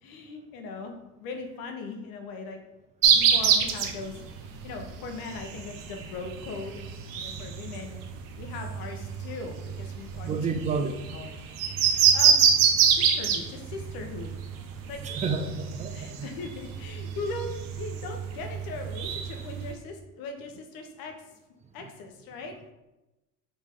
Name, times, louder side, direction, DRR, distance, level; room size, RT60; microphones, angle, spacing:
voice 1, 0.0-2.6 3.1-4.1 4.6-6.8 7.2-8.0 8.4-10.6 11.0-11.3 11.9-12.5 12.9-14.3 14.9-15.0 15.9-17.5 17.8-21.1 21.7-22.5, left 3 dB, 60° left, 4 dB, 1.0 m, -39 dB
sound 1, 3.0-19.7, right 7 dB, 55° right, 0.7 m, -26 dB
voice 2, 10.2-10.9 15.0-16.3, right 4 dB, 20° right, 7 dB, 0.3 m, -30 dB
4.3 x 3.0 x 3.6 m, 1.0 s
hypercardioid pair, 80°, 41 cm